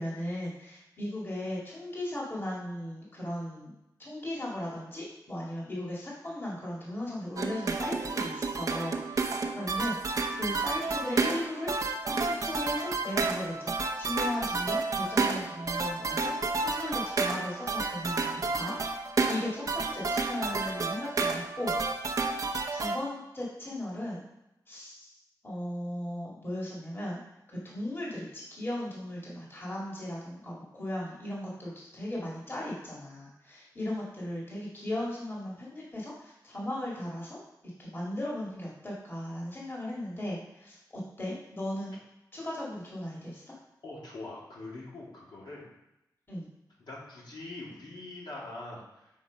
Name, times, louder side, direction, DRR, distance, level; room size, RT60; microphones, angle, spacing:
voice 1, 0.0-3.7 4.0-10.0 10.3-11.8 12.1-18.8 19.2-21.7 22.2-24.2 24.7-25.2 25.4-27.2 27.5-37.4 37.8-42.0 42.3-43.4 46.3-46.5, left 1 dB, 30° left, -5 dB, 2.1 m, -37 dB
sound 1, 7.4-23.0, right 3 dB, 50° right, 0.7 m, -31 dB
voice 2, 43.8-45.7 46.8-49.1, left 2 dB, 75° left, -5 dB, 2.5 m, -43 dB
7.2 x 4.6 x 5.1 m, 0.89 s
wide cardioid pair, 130°, 8 cm